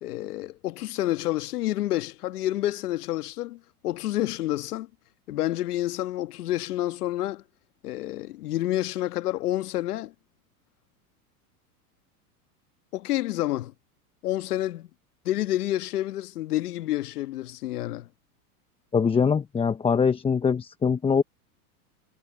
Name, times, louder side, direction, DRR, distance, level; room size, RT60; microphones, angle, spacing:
voice 1, 0.0-4.9 5.3-7.4 7.8-10.1 12.9-13.7 14.2-14.9 15.2-18.1, left 14 dB, 80° left, 1.5 m, -29 dB
voice 2, 18.9-21.2, left 6 dB, 10° left, 0.8 m, -23 dB
hypercardioid pair, 120°, 45 cm